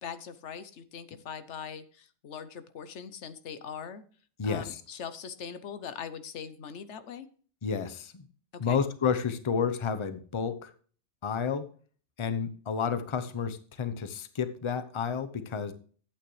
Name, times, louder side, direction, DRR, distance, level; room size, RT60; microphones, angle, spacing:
voice 1, 0.0-4.0 4.4-7.3 8.5-8.8, left 7 dB, 80° left, 12 dB, 1.1 m, -41 dB
voice 2, 4.4-4.8 7.6-8.2 8.6-10.7 11.2-11.7 12.2-15.7, left 6 dB, 30° left, 11 dB, 0.7 m, -31 dB
11.5 x 8.6 x 3.2 m, 0.43 s
omnidirectional pair, 1.2 m